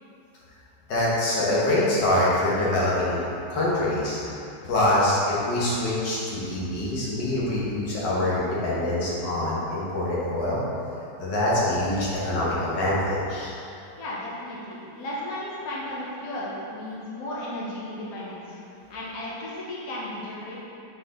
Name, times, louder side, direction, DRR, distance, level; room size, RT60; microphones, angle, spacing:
voice 1, 0.9-3.2 3.5-4.2 4.6-10.6 11.2-13.5, left 1 dB, 85° left, -7 dB, 2.0 m, -24 dB
voice 2, 14.0-18.6 18.9-20.7, left 1 dB, 55° left, -7 dB, 1.5 m, -35 dB
7.0 x 4.7 x 3.8 m, 2.7 s
omnidirectional pair, 1.8 m